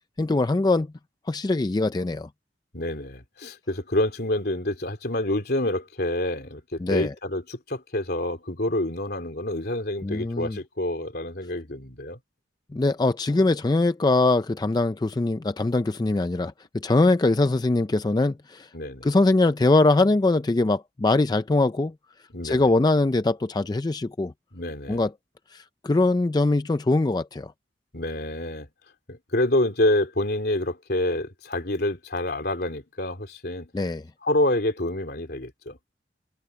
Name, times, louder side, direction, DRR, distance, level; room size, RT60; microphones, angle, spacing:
voice 1, 0.2-0.9 1.3-2.3 6.8-7.1 10.0-10.6 12.7-18.7 19.0-21.9 22.4-24.3 24.9-25.1 25.5-27.5 33.7-34.0, left 2 dB, 20° left, 0.4 m, -22 dB
voice 2, 2.7-12.2 18.7-19.1 22.3-22.7 24.5-25.0 27.9-28.7 29.1-33.7 34.2-35.8, left 1 dB, 60° left, 3.3 m, -27 dB
head